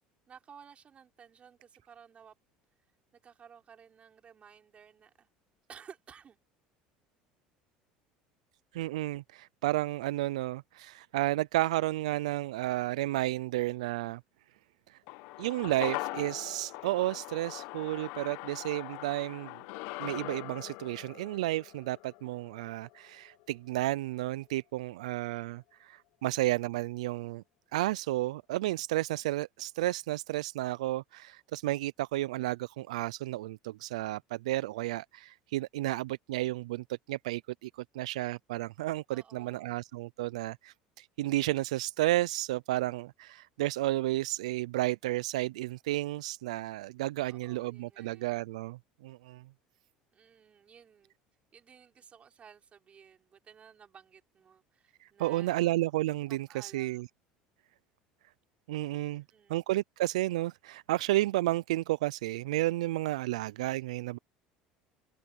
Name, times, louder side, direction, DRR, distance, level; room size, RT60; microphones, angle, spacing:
voice 1, 0.3-2.4 3.1-5.3 5.7-6.4 39.1-39.8 47.2-48.3 50.1-51.1 51.5-55.6 56.3-57.0 59.1-59.7, right 7 dB, 35° right, 5.7 m, -55 dB
voice 2, 8.7-14.2 14.9-15.0 15.4-19.5 20.0-27.4 27.7-49.4 55.0-57.0 58.7-59.2 59.5-64.2, right 17 dB, 85° right, 0.4 m, -32 dB
sound 1, 15.1-23.6 23.9-24.0, left 22 dB, 70° left, 1.4 m, -42 dB
open air
hypercardioid pair, 80°, 4 cm